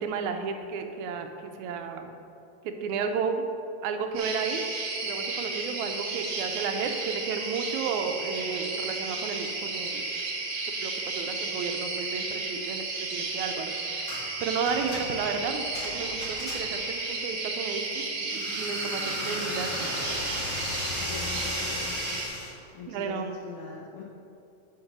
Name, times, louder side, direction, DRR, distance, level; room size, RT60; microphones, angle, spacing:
voice 1, 0.0-2.1 2.6-3.5 3.8-4.6 5.0-10.1 10.8-19.9 22.9-23.4, right 5 dB, 80° right, 6 dB, 2.0 m, -33 dB
sound 1, 4.1-22.3, right 3 dB, 60° right, 1.6 m, -33 dB
sound 2, 14.1-14.3 14.7-16.9 18.3-22.6, left 2 dB, 55° left, 0.8 m, -36 dB
voice 2, 21.0-22.2 22.7-24.0, left 6 dB, 75° left, -3 dB, 1.3 m, -42 dB
9.3 x 4.0 x 5.9 m, 2.7 s
omnidirectional pair, 3.4 m